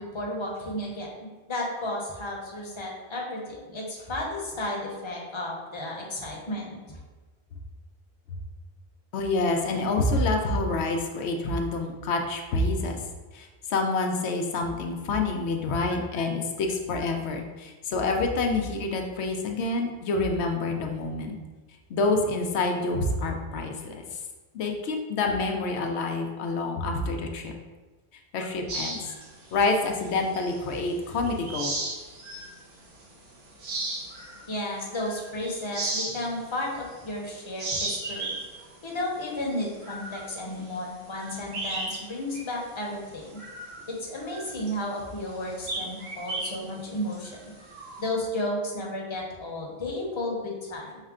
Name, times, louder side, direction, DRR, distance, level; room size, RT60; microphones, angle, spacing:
voice 1, 0.0-7.0 34.5-38.4 38.8-43.4 43.9-47.3 48.0-50.9, left 1 dB, 30° left, -2 dB, 0.8 m, -33 dB
voice 2, 9.1-13.0 13.3-21.4 21.9-24.2 24.5-27.5 28.3-29.0 29.5-31.7, left 3 dB, 85° left, 3 dB, 0.9 m, -27 dB
sound 1, 28.7-30.9 31.2-32.6 33.0-33.1 33.5-37.2 37.5-42.1 42.3-42.5 43.0-48.1, right 2 dB, 75° right, 1.1 m, -35 dB
5.6 x 2.1 x 3.6 m, 1.2 s
omnidirectional pair, 1.1 m